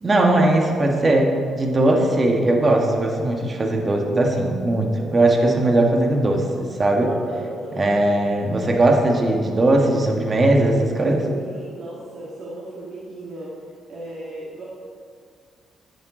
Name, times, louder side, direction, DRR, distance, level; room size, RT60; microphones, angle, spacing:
voice 1, 0.0-7.1 7.8-11.3, right 2 dB, 30° right, 2 dB, 1.5 m, -19 dB
voice 2, 7.0-7.9 11.3-13.5 13.9-14.6, right 2 dB, 60° right, -6 dB, 2.0 m, -35 dB
11.0 x 8.0 x 3.8 m, 2.2 s
cardioid pair, 90°, 0 cm